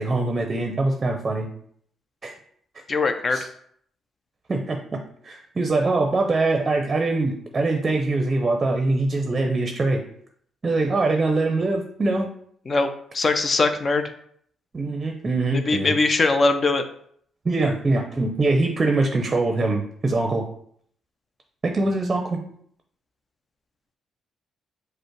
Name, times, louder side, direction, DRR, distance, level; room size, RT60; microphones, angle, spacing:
voice 1, 0.0-1.5 2.2-2.3 3.3-3.5 4.5-4.8 5.2-10.0 10.6-12.3 14.7-15.9 17.4-20.4 21.6-22.4, right 2 dB, 30° right, 3 dB, 0.6 m, -23 dB
voice 2, 2.9-3.4 12.7-14.1 15.7-16.8, left 3 dB, 40° left, 8 dB, 0.5 m, -21 dB
5.2 x 2.1 x 4.5 m, 0.64 s
cardioid pair, 90°, 0 cm